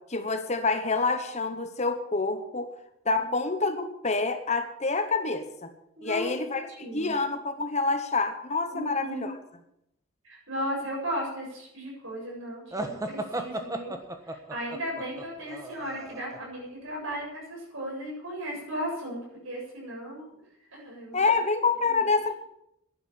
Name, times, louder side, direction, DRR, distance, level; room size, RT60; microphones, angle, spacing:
voice 1, 0.0-2.7 3.0-5.7 6.0-9.3 21.1-22.4, left 3 dB, 30° left, 8 dB, 1.1 m, -27 dB
voice 2, 6.0-6.3 6.8-7.1 8.7-9.3 10.2-13.9 14.2-20.3 20.7-21.2 21.9-22.0, equal, 65° right, -2 dB, 7.9 m, -36 dB
sound 1, 12.7-16.4, right 1 dB, 15° right, 1.3 m, -35 dB
11.0 x 11.0 x 8.7 m, 0.80 s
head